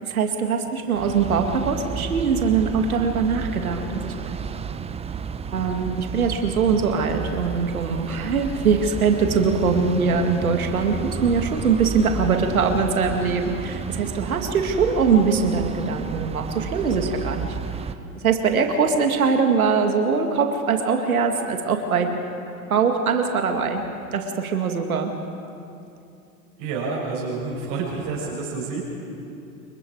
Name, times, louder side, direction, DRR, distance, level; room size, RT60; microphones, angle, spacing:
voice 1, 0.0-4.4 5.5-17.6 18.2-22.1 22.7-23.8 24.1-25.1, right 5 dB, 90° right, 4 dB, 2.2 m, -22 dB
sound 1, 0.9-18.0, right 6 dB, 15° right, 0.8 m, -32 dB
voice 2, 26.6-28.8, right 4 dB, 50° right, -4 dB, 6.5 m, -28 dB
28.5 x 22.5 x 4.8 m, 2.6 s
hypercardioid pair, 100°, 42 cm